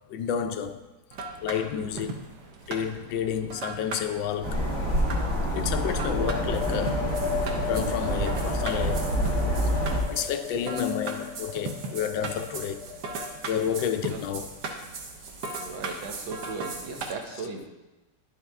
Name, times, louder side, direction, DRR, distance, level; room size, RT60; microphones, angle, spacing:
voice 1, 0.1-0.8 1.4-2.2 2.7-4.6 5.5-7.0 7.6-9.1 10.1-12.8 13.5-14.5, left 8 dB, 90° left, 1.3 m, -30 dB
sound 1, 1.1-17.1, right 3 dB, 65° right, 1.3 m, -38 dB
voice 2, 1.7-2.1 14.0-14.2 15.6-17.7, right 4 dB, 90° right, 1.7 m, -38 dB
sound 2, 4.4-10.0, equal, 45° right, 2.4 m, -27 dB
sound 3, 6.1-13.8, left 7 dB, 70° left, 1.2 m, -35 dB
10.0 x 5.5 x 3.4 m
omnidirectional pair, 2.0 m